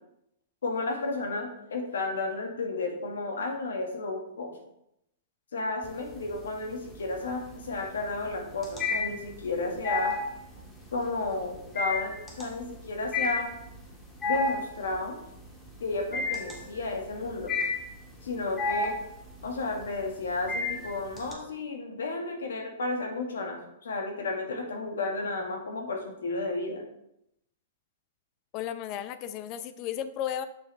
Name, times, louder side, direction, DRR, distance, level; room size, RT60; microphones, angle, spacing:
voice 1, 0.6-4.5 5.5-10.2 10.9-13.5 14.2-15.2 15.8-17.5 18.2-19.0 19.4-26.8, left 3 dB, 80° left, 2 dB, 1.6 m, -32 dB
sound 1, 5.8-6.5 6.8-21.3, left 3 dB, 15° left, 1.7 m, -32 dB
voice 2, 28.5-30.5, left 10 dB, 40° left, 12 dB, 0.5 m, -34 dB
7.0 x 6.0 x 3.3 m, 0.80 s
hypercardioid pair, 120°, 0 cm